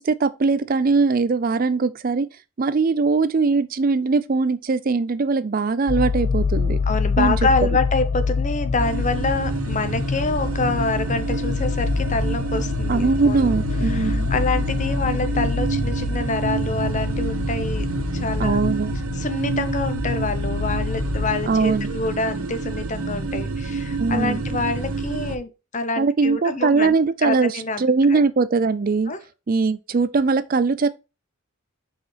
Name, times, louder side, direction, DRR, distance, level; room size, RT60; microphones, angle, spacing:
voice 1, 0.0-2.3 2.6-6.8 7.2-7.4 12.9-14.3 18.4-18.9 21.5-21.9 24.0-24.4 26.0-29.1 29.5-30.9, right 4 dB, 40° right, 0.4 m, -21 dB
sound 1, 5.9-21.3, left 4 dB, 75° left, 0.7 m, -26 dB
voice 2, 6.8-13.5 13.8-17.9 18.1-18.6 19.1-26.9 27.2-27.8 28.1-28.2 29.1-29.2, left 3 dB, 35° left, 0.8 m, -26 dB
sound 2, 8.8-25.4, right 4 dB, 75° right, 0.9 m, -28 dB
5.4 x 4.9 x 5.6 m
head